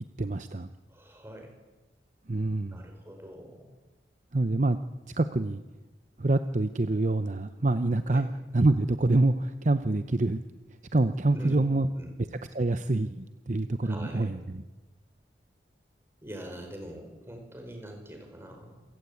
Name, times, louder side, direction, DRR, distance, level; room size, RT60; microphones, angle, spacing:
voice 1, 0.2-0.7 2.3-2.8 4.3-4.8 5.2-5.6 6.2-8.3 8.5-10.4 10.9-11.9 12.5-14.6, right 2 dB, 45° right, 10 dB, 0.8 m, -26 dB
voice 2, 0.9-1.5 2.7-3.7 8.1-8.2 11.3-12.2 13.8-14.4 16.2-18.8, right 1 dB, 15° right, 4 dB, 5.0 m, -43 dB
27.0 x 17.5 x 8.5 m, 1.2 s
head